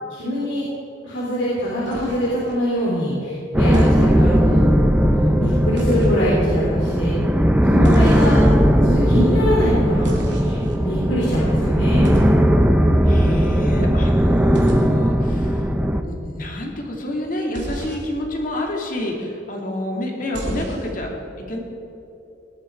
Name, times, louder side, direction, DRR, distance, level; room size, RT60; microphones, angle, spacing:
voice 1, 0.1-0.7 1.0-4.7 5.1-7.1 7.6-8.4 8.8-10.1 10.4-12.2, equal, 65° left, -7 dB, 3.3 m, -23 dB
sound 1, 1.9-2.5 3.7-4.1 5.8-6.2 7.8-8.5 10.0-10.7 12.0-12.4 14.5-14.8 17.5-18.0 20.3-20.9, equal, 65° right, 2.8 m, -31 dB
sound 2, 3.5-16.0, equal, 5° right, 0.6 m, -17 dB
voice 2, 13.0-15.7 16.1-21.1 21.5-21.6, left 1 dB, 45° left, 0 dB, 2.3 m, -28 dB
18.0 x 12.5 x 4.6 m, 3.0 s
head